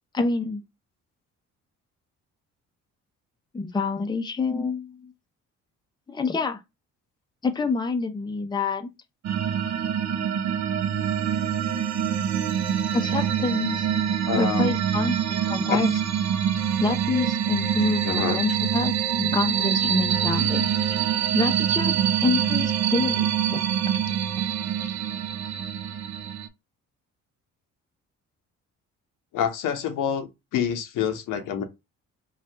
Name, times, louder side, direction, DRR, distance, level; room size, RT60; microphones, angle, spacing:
voice 1, 0.1-0.6 3.5-5.1 6.1-6.6 7.4-8.9 12.9-13.9 14.4-16.0 16.8-20.7 21.3-21.9 22.2-23.6 24.9-25.0, left 4 dB, 15° left, 0.5 m, -27 dB
sound 1, 9.2-26.5, right 9 dB, 55° right, 0.5 m, -25 dB
voice 2, 14.3-14.7 15.6-15.8 18.0-18.4 29.3-31.6, left 8 dB, 75° left, 0.7 m, -27 dB
2.8 x 2.3 x 3.2 m
supercardioid pair, 60°, 32 cm